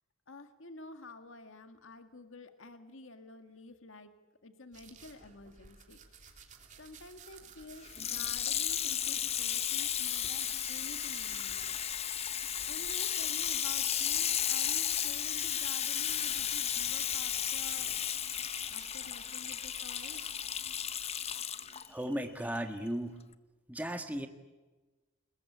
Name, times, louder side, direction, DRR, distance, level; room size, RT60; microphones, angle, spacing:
voice 1, 0.3-4.2 4.4-6.4 6.8-12.2 12.6-17.9 18.4-20.3, left 2 dB, 60° left, 7 dB, 1.9 m, -50 dB
sound 1, 4.7-15.7 16.0-21.4, right 5 dB, 35° right, 3.3 m, -55 dB
Water tap faucet / Sink (filling or washing), 7.9-21.9 22.5-22.6, left 9 dB, 30° left, 0.8 m, -34 dB
sound 2, 14.1-22.9, left 2 dB, 10° left, 5.4 m, -61 dB
voice 2, 21.9-23.2 23.7-24.3, right 1 dB, 5° right, 6 dB, 1.6 m, -36 dB
30.0 x 20.5 x 8.6 m, 1.2 s
head